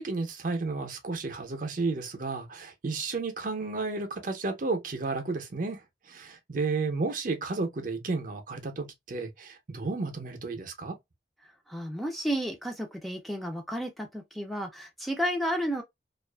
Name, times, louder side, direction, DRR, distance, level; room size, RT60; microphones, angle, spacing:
voice 1, 0.0-5.8 6.1-10.9, right 3 dB, 50° right, 0.6 m, -32 dB
voice 2, 11.7-15.8, equal, ahead, 0.4 m, -32 dB
2.5 x 2.3 x 2.2 m
head